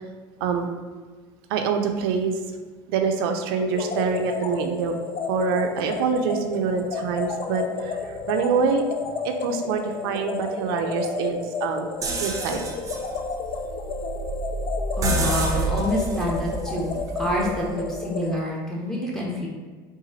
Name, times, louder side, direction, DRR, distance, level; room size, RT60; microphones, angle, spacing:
voice 1, 1.5-2.4 2.9-5.0 5.3-8.8 9.2-11.9 12.2-12.6, right 5 dB, 90° right, 5 dB, 0.4 m, -25 dB
sound 1, 3.7-18.3, left 5 dB, 50° left, 0.5 m, -32 dB
sound 2, 12.0-17.8, right 2 dB, 25° right, 0.6 m, -29 dB
voice 2, 15.0-19.5, equal, 5° left, -4 dB, 1.0 m, -27 dB
3.9 x 2.4 x 3.9 m, 1.4 s
supercardioid pair, 115°, 12 cm